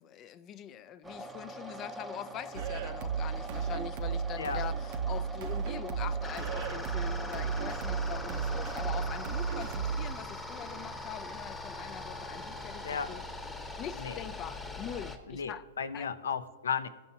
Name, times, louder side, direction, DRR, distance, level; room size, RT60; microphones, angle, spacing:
voice 1, 0.0-13.2 13.8-15.7 15.9-16.1, left 10 dB, 30° left, 0.5 m, -43 dB
sound 1, 1.0-10.0, equal, 10° right, 0.7 m, -44 dB
sound 2, 2.5-10.1, right 6 dB, 50° right, 0.6 m, -34 dB
sound 3, 6.2-15.2, left 2 dB, 10° left, 1.1 m, -41 dB
voice 2, 15.3-16.9, left 6 dB, 80° left, 0.6 m, -34 dB
14.5 x 5.8 x 2.8 m
hypercardioid pair, 120°, 0 cm